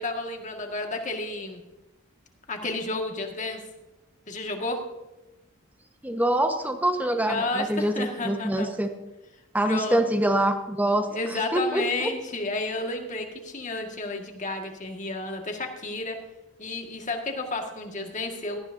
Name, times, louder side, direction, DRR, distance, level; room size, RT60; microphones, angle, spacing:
voice 1, 0.0-1.6 2.5-3.6 4.3-4.8 7.2-8.7 9.6-10.0 11.1-16.2 16.6-18.6, left 2 dB, 35° left, 3 dB, 1.9 m, -31 dB
voice 2, 6.0-8.9 9.5-11.1 11.5-12.1, right 1 dB, 10° right, 5 dB, 1.2 m, -25 dB
18.0 x 13.5 x 2.7 m, 1.0 s
head